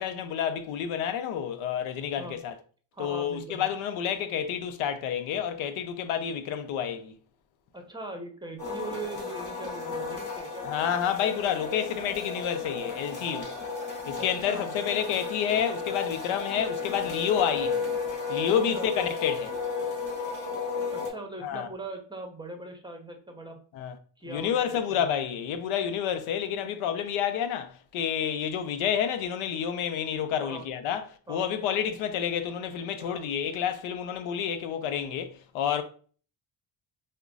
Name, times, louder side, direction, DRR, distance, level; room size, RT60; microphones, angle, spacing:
voice 1, 0.0-2.5 3.0-7.1 10.6-13.5 14.1-17.9 18.3-19.5 21.4-21.7 23.7-24.0 24.3-35.8, left 8 dB, 75° left, 0.6 m, -29 dB
voice 2, 2.9-3.7 7.7-10.8 14.2-14.7 18.7-19.1 20.9-23.6 24.2-24.8 30.4-30.6 31.3-31.4 33.0-33.2, right 2 dB, 10° right, 0.7 m, -40 dB
sound 1, 8.6-21.1, left 4 dB, 40° left, 1.4 m, -33 dB
4.8 x 2.2 x 2.4 m
supercardioid pair, 80°, 49 cm